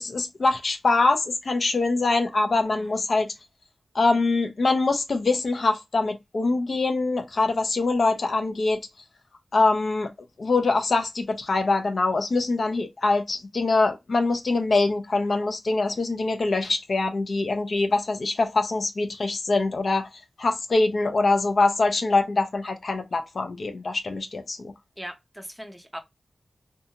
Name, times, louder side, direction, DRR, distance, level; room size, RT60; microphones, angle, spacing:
voice 1, 0.0-3.3 3.9-8.8 9.5-10.1 10.4-20.1 20.4-24.7, left 3 dB, 55° left, 0.5 m, -24 dB
voice 2, 25.0-26.0, equal, 5° right, 0.5 m, -40 dB
2.6 x 2.3 x 2.8 m
wide cardioid pair, 115°, 0 cm